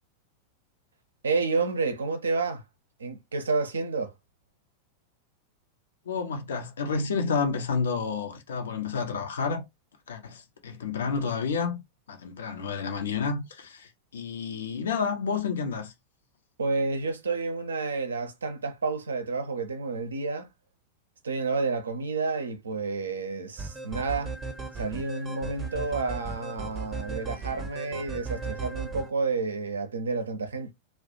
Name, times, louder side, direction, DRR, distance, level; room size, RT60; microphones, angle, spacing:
voice 1, 1.2-2.6 3.0-4.1 16.6-20.5 21.2-24.3 24.7-30.7, right 4 dB, 70° right, 0.5 m, -30 dB
voice 2, 6.1-9.6 10.1-11.8 12.1-15.9, left 5 dB, 65° left, 0.5 m, -30 dB
sound 1, 23.6-29.1, right 4 dB, 15° right, 0.6 m, -37 dB
2.3 x 2.0 x 2.6 m
figure-of-eight pair, 90°, 0 cm